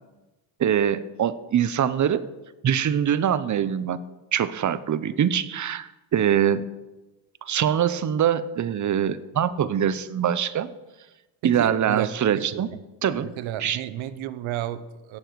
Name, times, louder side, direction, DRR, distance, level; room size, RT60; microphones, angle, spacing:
voice 1, 0.6-2.2 2.6-4.0 4.3-6.7 7.4-10.7 11.4-12.7 13.0-13.3 13.6-13.8, right 9 dB, 40° right, 15 dB, 0.7 m, -23 dB
voice 2, 11.4-12.8 13.2-15.2, right 11 dB, 80° right, 14 dB, 0.9 m, -32 dB
17.0 x 7.0 x 4.7 m, 1.1 s
cardioid pair, 95°, 47 cm